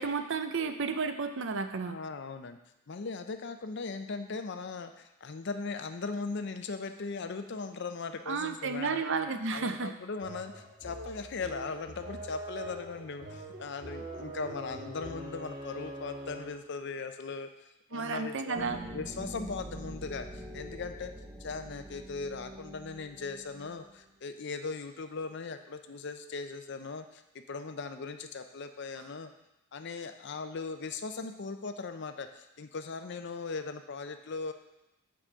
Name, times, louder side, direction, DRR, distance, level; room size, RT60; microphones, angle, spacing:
voice 1, 0.0-2.0 8.3-9.9 17.9-18.8, right 4 dB, 60° right, 9 dB, 0.5 m, -32 dB
voice 2, 1.9-2.6 2.9-21.1 21.4-29.3 29.7-34.5, left 4 dB, 55° left, 8 dB, 0.5 m, -39 dB
sound 1, 10.2-16.7, right 1 dB, 35° right, 1.7 m, -43 dB
sound 2, 18.5-24.0, right 1 dB, 15° right, 0.7 m, -44 dB
6.1 x 4.9 x 6.6 m, 0.92 s
head